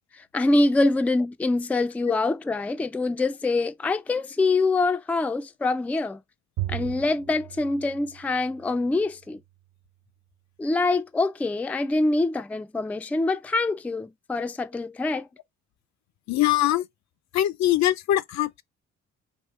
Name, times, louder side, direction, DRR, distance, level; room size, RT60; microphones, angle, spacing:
voice 1, 0.1-6.2 6.7-9.4 10.6-15.3, left 2 dB, 5° left, 0.3 m, -25 dB
Bowed string instrument, 6.6-9.1, right 15 dB, 60° right, 0.4 m, -36 dB
voice 2, 16.3-16.9 17.3-18.6, left 13 dB, 65° left, 0.5 m, -22 dB
3.6 x 2.7 x 4.3 m
cardioid pair, 70°, 30 cm